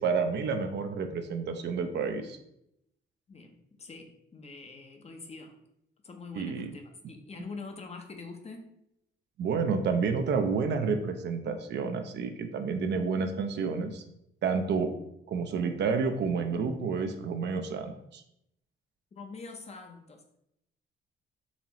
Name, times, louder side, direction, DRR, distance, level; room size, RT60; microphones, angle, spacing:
voice 1, 0.0-2.4 6.4-6.7 9.4-14.0 14.4-15.0 15.3-18.2, right 5 dB, 60° right, 7 dB, 0.5 m, -30 dB
voice 2, 3.3-5.5 6.0-8.7 19.1-20.4, left 4 dB, 30° left, 4 dB, 0.6 m, -45 dB
4.1 x 3.0 x 2.9 m, 0.79 s
cardioid pair, 90°, 20 cm